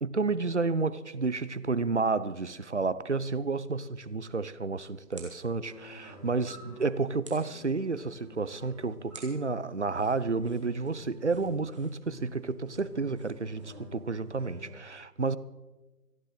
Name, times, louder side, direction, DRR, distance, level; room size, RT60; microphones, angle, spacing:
voice 1, 0.0-15.4, right 4 dB, 50° right, 0.6 m, -31 dB
sound 1, 4.0-14.0, right 3 dB, 20° right, 1.7 m, -56 dB
sound 2, 5.6-14.6, equal, ahead, 4.6 m, -50 dB
26.5 x 9.7 x 3.8 m
figure-of-eight pair, 155°, 47 cm